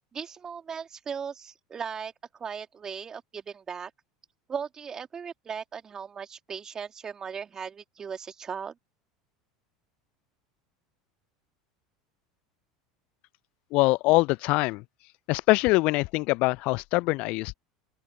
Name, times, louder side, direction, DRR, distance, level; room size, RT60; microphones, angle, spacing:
voice 1, 0.1-3.9 4.5-8.7, right 6 dB, 25° right, 2.7 m, -37 dB
voice 2, 13.7-14.8 15.3-17.5, left 24 dB, 50° left, 0.5 m, -23 dB
open air
figure-of-eight pair, 75°, 2 cm